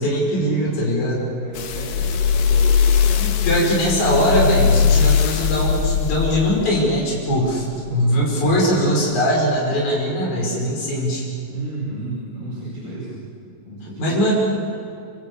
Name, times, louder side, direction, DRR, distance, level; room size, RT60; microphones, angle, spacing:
voice 1, 0.0-1.2 3.2-11.3 14.0-14.3, equal, 55° left, -3 dB, 7.1 m, -20 dB
voice 2, 1.4-3.9 7.9-8.7 11.5-13.2 13.6-14.3, right 2 dB, 70° right, -4 dB, 6.8 m, -33 dB
sound 1, 1.5-8.0 8.6-8.7, left 7 dB, 70° left, 2.8 m, -20 dB
27.5 x 26.0 x 8.2 m, 2.4 s
omnidirectional pair, 4.0 m